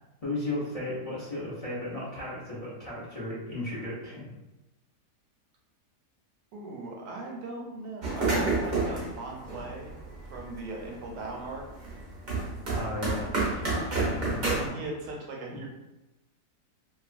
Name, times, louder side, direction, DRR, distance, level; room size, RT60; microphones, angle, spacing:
voice 1, 0.2-4.3 12.7-13.6, left 1 dB, 40° left, -9 dB, 0.5 m, -35 dB
voice 2, 6.5-9.9 10.3-11.6 13.5-14.2 14.6-15.7, right 2 dB, 80° right, -1 dB, 1.2 m, -39 dB
sound 1, 8.0-10.7 11.0-14.7, right 3 dB, 45° right, 0.6 m, -29 dB
2.8 x 2.3 x 2.5 m, 1.0 s
omnidirectional pair, 1.8 m